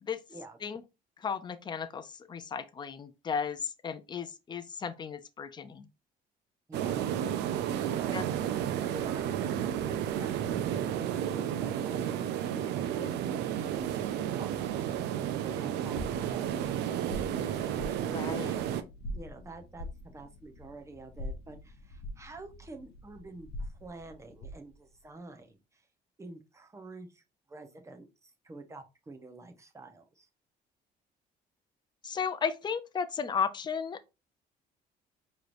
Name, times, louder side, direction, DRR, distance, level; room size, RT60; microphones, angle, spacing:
voice 1, 1.2-5.9 8.1-8.2 18.1-18.5 32.0-34.1, left 6 dB, 25° left, 0.5 m, -34 dB
voice 2, 6.7-7.0 7.6-8.6 8.9-13.9 14.1-18.1 18.4-18.7 19.1-25.9 26.2-27.2 27.5-30.3, right 2 dB, 15° right, 0.8 m, -48 dB
sound 1, 6.7-18.8, right 10 dB, 85° right, 0.5 m, -32 dB
sound 2, 15.8-24.7, equal, 70° left, 1.0 m, -44 dB
4.7 x 3.2 x 2.6 m
cardioid pair, 110°, 17 cm